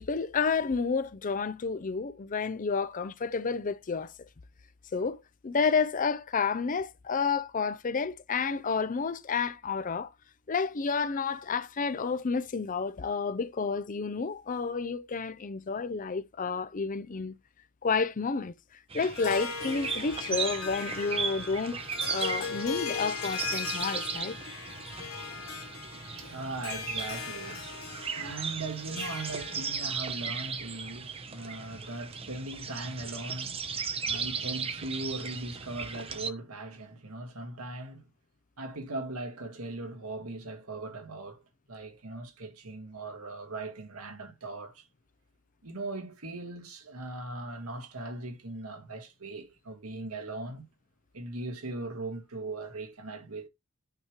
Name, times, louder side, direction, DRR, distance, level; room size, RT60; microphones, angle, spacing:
voice 1, 0.0-4.1 4.9-10.1 10.5-17.3 17.8-21.8 22.1-24.4, left 5 dB, 40° left, 0.5 m, -30 dB
sound 1, 18.9-36.3, right 5 dB, 25° right, 0.8 m, -36 dB
Harp, 19.0-29.9, left 6 dB, 75° left, 0.9 m, -39 dB
voice 2, 25.9-38.1 38.6-41.4 41.7-44.9 45.6-50.7 51.1-53.5, right 2 dB, 85° right, 1.8 m, -39 dB
8.9 x 3.1 x 5.0 m
head